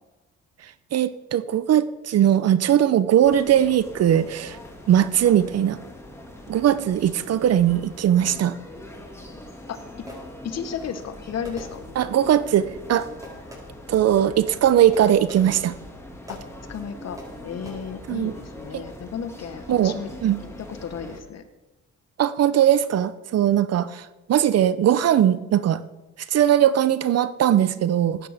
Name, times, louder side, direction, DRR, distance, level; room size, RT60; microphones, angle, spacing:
voice 1, 0.9-4.6 4.9-5.8 6.5-8.6 12.0-13.1 13.9-15.7 18.1-18.3 18.7-18.8 19.7-20.4 22.2-25.8 26.3-28.3, right 10 dB, 55° right, 15 dB, 0.6 m, -20 dB
sound 1, 3.2-21.2, left 1 dB, 10° left, 2.0 m, -42 dB
Fireworks, 10.1-10.7 11.4-12.3 13.2-13.9 14.9-15.8 16.3-16.7 17.2-17.7, equal, 10° right, 5.0 m, -44 dB
voice 2, 10.4-11.8 16.3-16.4 16.7-17.2 17.4-20.1 20.7-21.4, left 7 dB, 60° left, 10 dB, 1.2 m, -33 dB
15.0 x 10.5 x 3.5 m, 1.1 s
cardioid pair, 90°, 30 cm